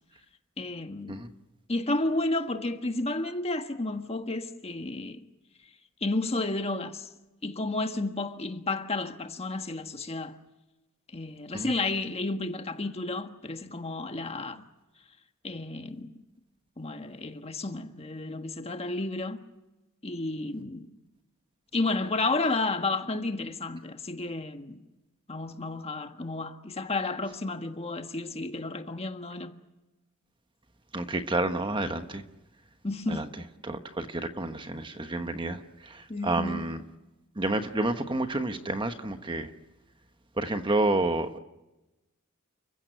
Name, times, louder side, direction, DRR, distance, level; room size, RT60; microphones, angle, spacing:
voice 1, 0.6-1.2 1.7-5.3 6.0-7.1 7.4-10.4 11.1-14.6 15.4-16.1 16.8-19.4 20.0-20.9 21.7-24.8 25.3-29.5 32.8-33.2 36.1-36.8, left 2 dB, 30° left, 1.5 m, -32 dB
voice 2, 30.9-32.2 33.1-33.3 33.6-36.8 37.4-39.5 40.4-41.4, right 2 dB, 20° right, 1.1 m, -30 dB
30.0 x 15.5 x 9.1 m
head